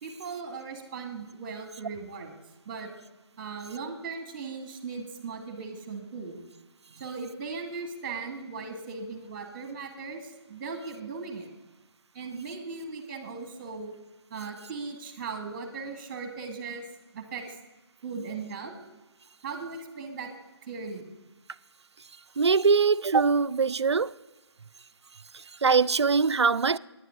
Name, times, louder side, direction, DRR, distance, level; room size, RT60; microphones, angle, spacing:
voice 1, 0.0-2.4 2.7-2.9 3.4-6.4 7.0-11.5 12.1-13.9 14.3-16.8 17.1-17.4 18.0-18.7 19.4-20.3 20.6-21.1, right 4 dB, 25° right, 1.7 m, -38 dB
voice 2, 22.4-24.1 25.3-26.8, right 5 dB, 70° right, 0.4 m, -22 dB
17.0 x 10.0 x 3.7 m
figure-of-eight pair, 150°, 14 cm